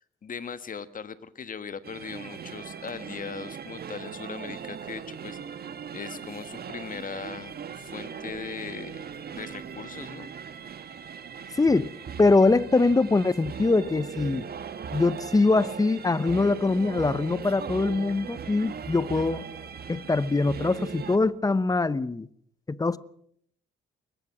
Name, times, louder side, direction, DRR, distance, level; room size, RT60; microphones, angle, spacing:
voice 1, 0.0-5.4 5.9-9.0 9.3-10.3, left 6 dB, 45° left, 1.5 m, -39 dB
sound 1, 1.8-21.2, right 7 dB, 50° right, 1.5 m, -39 dB
voice 2, 11.6-14.5 14.9-19.4 19.9-22.3 22.7-23.0, left 3 dB, 20° left, 0.8 m, -23 dB
21.5 x 21.0 x 6.1 m
cardioid pair, 90°, 20 cm